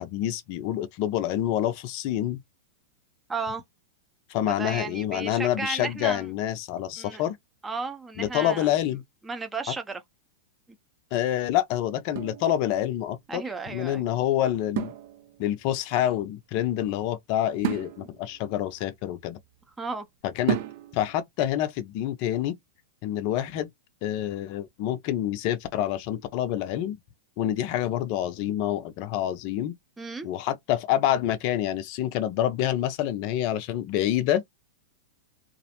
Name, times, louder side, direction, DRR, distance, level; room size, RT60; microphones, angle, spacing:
voice 1, 0.0-2.4 4.3-7.4 8.2-9.0 11.1-14.9 15.4-19.4 20.2-20.6 20.9-22.5 23.0-23.7 24.0-27.0 27.4-29.7 30.2-34.4, left 12 dB, 50° left, 0.5 m, -27 dB
voice 2, 3.3-3.6 4.5-6.3 7.0-7.2 7.6-8.7 9.2-10.0 13.3-14.0 19.8-20.1 30.0-30.3, right 4 dB, 15° right, 0.6 m, -34 dB
sound 1, 12.1-13.1 14.7-15.7 17.6-19.6 20.5-21.2, right 12 dB, 60° right, 0.4 m, -33 dB
2.4 x 2.0 x 2.8 m
hypercardioid pair, 115°, 0 cm